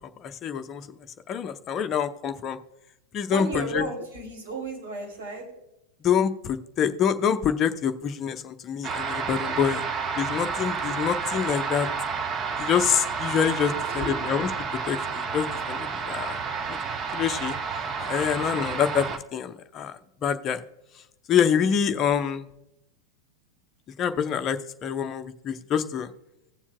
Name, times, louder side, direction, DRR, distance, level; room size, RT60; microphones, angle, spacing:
voice 1, 0.2-0.9 1.3-2.6 3.1-3.5 3.7-3.8 6.0-9.8 10.2-11.9 12.6-14.5 14.9-16.4 16.7-16.8 17.1-17.6 18.0-19.9 20.2-20.6 21.3-22.4 24.0-26.1, left 8 dB, 30° left, 8 dB, 0.7 m, -26 dB
voice 2, 3.3-5.5 9.4-9.8 10.5-11.0 13.7-14.3, right 2 dB, 55° right, 1 dB, 3.0 m, -35 dB
sound 1, 8.8-19.2, right 5 dB, 25° right, 0.7 m, -30 dB
18.0 x 7.2 x 2.2 m, 0.91 s
figure-of-eight pair, 90°, 0 cm